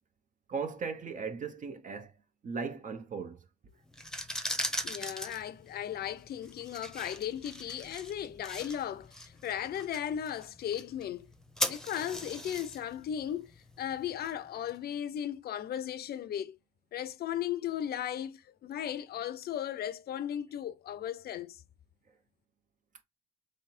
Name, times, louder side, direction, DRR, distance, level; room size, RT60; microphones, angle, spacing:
voice 1, 0.5-2.1 2.4-3.4, right 5 dB, 40° right, 0.8 m, -37 dB
sound 1, 3.9-14.7, equal, 5° left, 0.9 m, -40 dB
voice 2, 4.8-11.3 11.6-13.5 13.8-16.6 16.9-21.6, left 10 dB, 50° left, 0.6 m, -36 dB
3.3 x 3.0 x 4.4 m
hypercardioid pair, 65°, 21 cm